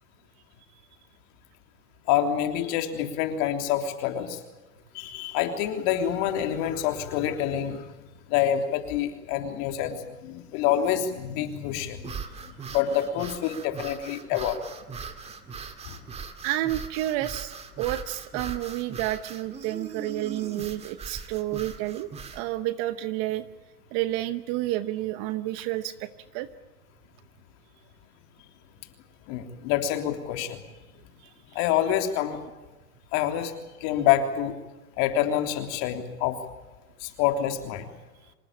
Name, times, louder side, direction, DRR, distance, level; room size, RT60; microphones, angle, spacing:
voice 1, 2.1-4.4 4.9-7.8 8.3-12.1 12.7-14.6 29.3-30.6 31.5-32.4 33.1-33.5 33.8-34.5 35.0-36.4 37.0-37.9, left 10 dB, 40° left, 6 dB, 3.3 m, -27 dB
sound 1, 12.0-22.5, right 5 dB, 15° right, 2.0 m, -40 dB
voice 2, 16.4-23.4 23.9-26.5, right 15 dB, 35° right, 13 dB, 1.0 m, -30 dB
26.0 x 19.5 x 8.8 m, 1.1 s
hypercardioid pair, 130°, 44 cm